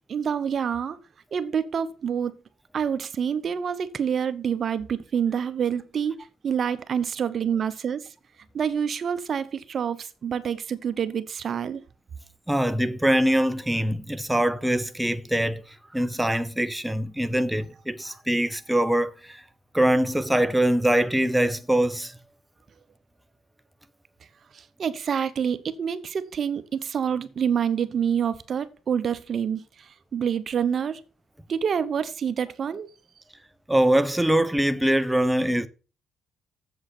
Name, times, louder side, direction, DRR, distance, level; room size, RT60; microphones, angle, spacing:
voice 1, 0.1-1.0 1.3-2.3 2.7-6.2 6.4-8.0 8.5-11.8 24.8-29.6 30.1-31.0 31.5-32.9, right 7 dB, 50° right, 0.9 m, -27 dB
voice 2, 12.5-15.6 15.9-19.4 19.7-22.1 33.7-35.7, right 1 dB, 5° right, 0.8 m, -23 dB
7.9 x 7.8 x 5.9 m
cardioid pair, 90°, 0 cm